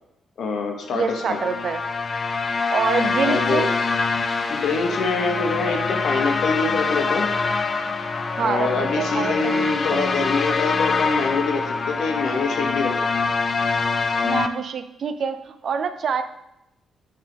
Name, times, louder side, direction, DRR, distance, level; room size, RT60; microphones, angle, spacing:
voice 1, 0.4-1.4 3.2-3.7 4.5-7.3 8.4-12.9, left 4 dB, 70° left, 3 dB, 1.1 m, -25 dB
voice 2, 0.9-1.8 2.7-3.7 8.4-10.2 14.2-16.2, right 6 dB, 60° right, 10 dB, 0.5 m, -26 dB
sound 1, 1.0-14.5, left 4 dB, 40° left, 0.5 m, -24 dB
Wind instrument woodwind instrument, 6.1-11.5, right 1 dB, 40° right, 1.0 m, -45 dB
8.6 x 3.6 x 3.6 m, 0.87 s
cardioid pair, 100°, 0 cm